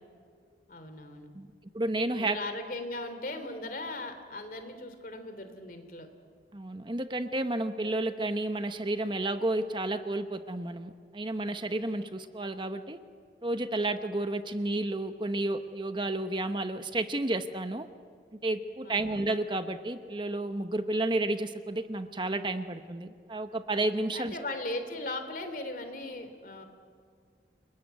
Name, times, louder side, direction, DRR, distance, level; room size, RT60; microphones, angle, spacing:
voice 1, 0.7-1.3 2.2-6.1 18.8-19.2 24.1-26.6, left 2 dB, 50° left, 8 dB, 3.1 m, -38 dB
voice 2, 1.7-2.4 6.5-13.0 13.4-17.9 18.4-24.4, right 2 dB, 25° right, 9 dB, 0.9 m, -31 dB
29.0 x 20.5 x 9.4 m, 2.2 s
head